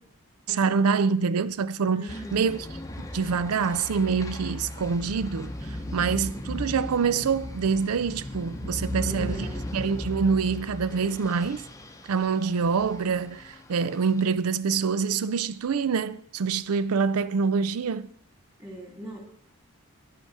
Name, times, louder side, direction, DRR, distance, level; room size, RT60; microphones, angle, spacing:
voice 1, 0.5-2.7 3.0-5.5 5.9-9.5 9.7-11.7 12.1-18.1, right 5 dB, 85° right, 0.5 m, -26 dB
voice 2, 1.9-2.4 8.9-9.8 18.6-19.2, equal, 15° right, 2.4 m, -39 dB
sound 1, 2.1-14.3, left 1 dB, 15° left, 0.7 m, -37 dB
9.7 x 8.2 x 4.6 m
head